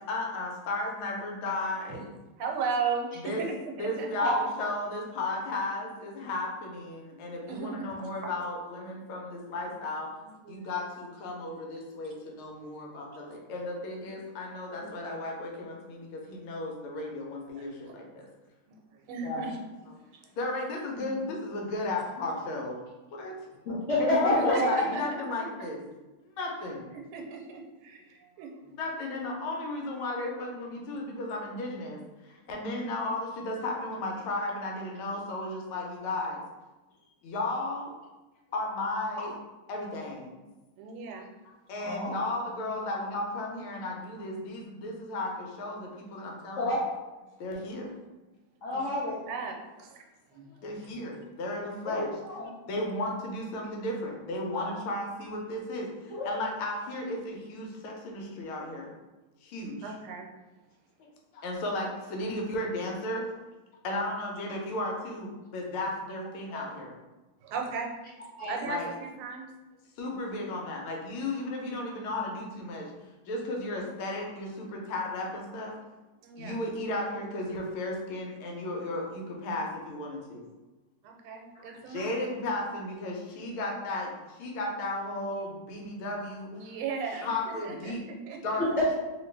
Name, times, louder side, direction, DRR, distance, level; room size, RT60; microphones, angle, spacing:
voice 1, 0.1-2.1 3.2-3.4 3.8-10.1 10.5-18.3 20.3-22.8 23.1-23.4 24.0-25.8 26.2-26.9 28.6-36.4 37.2-37.9 38.5-39.4 39.7-40.3 41.7-46.7 47.4-47.9 50.5-52.1 52.7-58.9 59.4-59.9 61.3-63.2 63.8-66.9 68.6-68.9 70.0-72.9 73.3-75.7 76.4-80.4 81.9-86.7 87.1-88.0 88.4-88.6, left 2 dB, 85° left, 0 dB, 1.5 m, -34 dB
voice 2, 2.4-4.1 7.5-8.3 10.2-10.7 11.4-11.5 12.1-12.2 14.8-14.9 17.5-18.2 18.7-19.6 20.1-20.2 24.1-25.0 26.9-28.6 40.8-41.3 48.7-48.9 49.3-50.0 50.3-50.9 59.8-60.3 67.4-67.9 68.5-69.4 76.2-76.6 81.0-82.2 86.5-88.4, right 5 dB, 85° right, 2 dB, 1.5 m, -36 dB
voice 3, 23.7-24.8 41.8-42.1 46.6-46.8 48.6-49.2 51.8-52.5 54.5-54.7 56.2-56.3 66.5-66.6 68.4-68.5 88.6-88.9, left 1 dB, 60° left, -8 dB, 0.8 m, -28 dB
3.1 x 2.8 x 3.2 m, 1.1 s
omnidirectional pair, 2.3 m